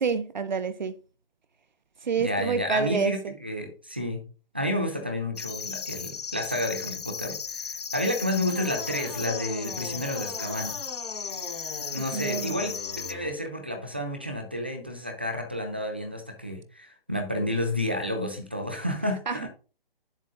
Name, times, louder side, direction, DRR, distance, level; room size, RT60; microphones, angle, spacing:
voice 1, 0.0-1.0 2.0-3.3 12.1-12.7 19.3-19.5, right 5 dB, 50° right, 0.7 m, -28 dB
voice 2, 2.2-4.2 4.5-10.8 11.9-19.5, left 1 dB, 10° right, 0.4 m, -31 dB
sound 1, 5.4-13.1, left 6 dB, 45° left, 0.5 m, -36 dB
sound 2, 8.5-13.3, left 2 dB, 20° left, 3.8 m, -41 dB
8.8 x 7.3 x 2.5 m
hypercardioid pair, 160°, 29 cm